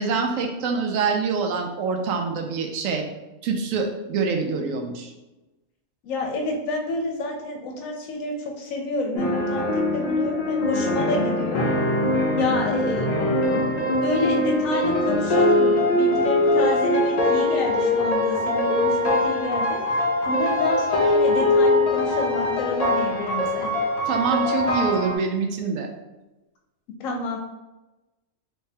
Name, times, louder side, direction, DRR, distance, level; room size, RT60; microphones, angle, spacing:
voice 1, 0.0-3.0 3.4-5.1 24.1-25.9, right 5 dB, 75° right, 3 dB, 1.0 m, -25 dB
voice 2, 6.0-11.7 12.4-23.7 27.0-27.4, left 2 dB, 75° left, 2 dB, 1.0 m, -29 dB
sound 1, 9.1-25.2, left 1 dB, 50° left, 0.5 m, -22 dB
3.2 x 2.7 x 3.3 m, 1.0 s
omnidirectional pair, 1.4 m